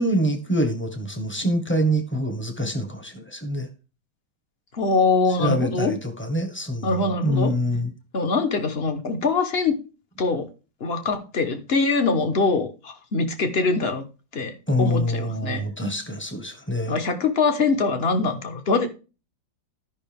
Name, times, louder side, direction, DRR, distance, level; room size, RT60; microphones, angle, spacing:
voice 1, 0.0-3.7 5.4-7.9 14.7-17.0, equal, 10° left, 0.9 m, -25 dB
voice 2, 4.7-5.9 6.8-7.5 8.1-9.8 10.2-10.5 10.8-14.1 14.3-15.7 16.9-18.9, left 3 dB, 40° left, 1.0 m, -23 dB
13.0 x 5.6 x 3.5 m
omnidirectional pair, 2.0 m